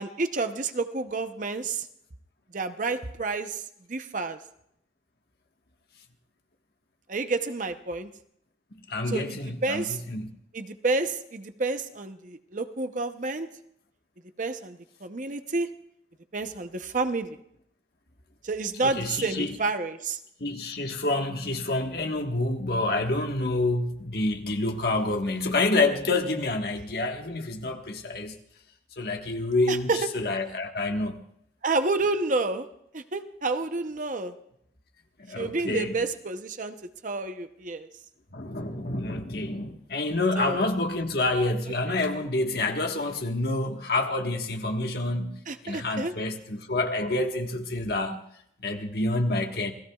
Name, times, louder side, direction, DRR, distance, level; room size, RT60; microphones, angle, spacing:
voice 1, 0.0-1.9 2.5-3.6 3.9-4.4 7.1-8.1 9.1-10.0 10.5-13.5 14.4-15.7 16.3-17.4 18.4-20.2 29.7-30.1 31.6-32.7 32.9-34.3 35.3-36.7 37.0-37.9 40.4-40.6 41.9-42.0 45.5-46.1, right 3 dB, 45° right, 0.8 m, -29 dB
voice 2, 8.9-10.3 18.8-19.6 20.4-28.4 29.0-31.2 35.2-35.9 38.3-48.2 48.6-49.7, left 2 dB, 55° left, 1.5 m, -28 dB
28.5 x 17.5 x 2.4 m
head